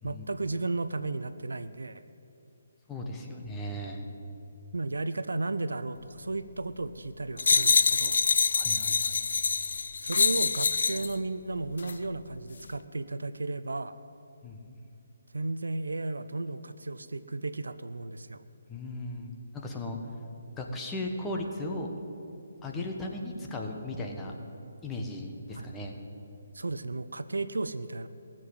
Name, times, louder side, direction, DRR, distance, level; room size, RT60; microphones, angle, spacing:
voice 1, 0.0-2.0 4.7-8.2 10.0-13.9 15.3-18.4 25.5-25.7 26.5-28.1, right 2 dB, 70° right, 13 dB, 0.6 m, -34 dB
voice 2, 2.9-4.1 8.5-9.1 14.4-14.8 18.7-20.0 20.6-21.9 22.6-24.3 24.8-26.0, left 1 dB, 10° left, 1 dB, 1.4 m, -36 dB
sound 1, 7.4-11.1 11.8-12.0, left 5 dB, 55° left, 0.6 m, -25 dB
18.5 x 7.7 x 7.9 m, 2.7 s
figure-of-eight pair, 140°, 0 cm